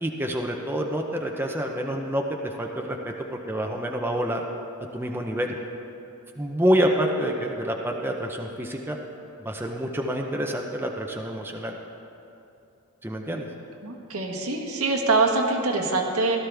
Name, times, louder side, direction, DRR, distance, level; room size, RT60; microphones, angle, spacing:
voice 1, 0.0-4.4 4.9-5.6 6.4-9.0 9.4-11.8 13.0-13.5, equal, 10° right, 1 dB, 0.7 m, -27 dB
voice 2, 13.8-16.4, right 3 dB, 80° right, 1 dB, 1.5 m, -24 dB
16.5 x 13.0 x 3.5 m, 2.7 s
head